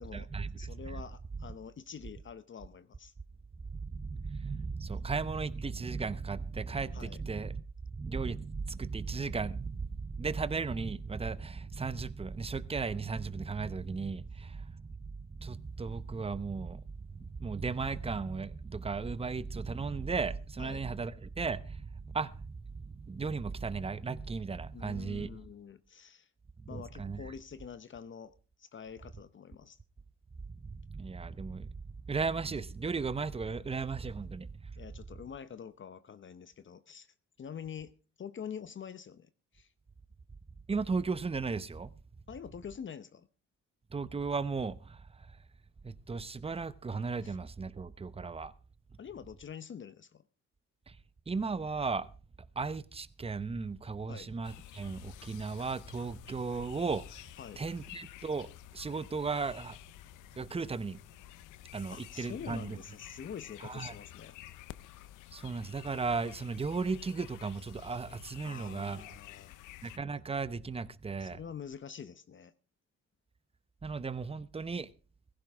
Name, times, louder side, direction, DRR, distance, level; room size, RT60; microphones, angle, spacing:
voice 1, 0.0-1.0 3.7-7.6 7.9-14.8 15.3-16.9 17.1-22.5 22.8-25.3 26.7-27.2 30.6-31.7 32.1-34.8 40.7-41.9 43.9-45.3 45.8-48.5 50.9-51.0 51.3-52.1 52.6-57.2 57.6-59.8 60.4-61.0 61.7-62.8 63.6-63.9 65.3-69.0 69.8-71.4 73.8-74.9, right 4 dB, 20° right, 0.8 m, -36 dB
voice 2, 0.6-3.1 6.9-7.2 20.6-20.8 24.7-26.3 26.7-29.8 34.8-37.1 37.4-39.7 42.3-43.3 47.2-47.4 49.0-50.2 54.1-54.3 57.4-57.6 61.9-64.4 68.4-69.6 71.2-72.5, left 7 dB, 40° left, 0.8 m, -46 dB
sound 1, 54.4-70.0, left 15 dB, 90° left, 0.6 m, -51 dB
16.0 x 15.0 x 3.5 m
cardioid pair, 90°, 30 cm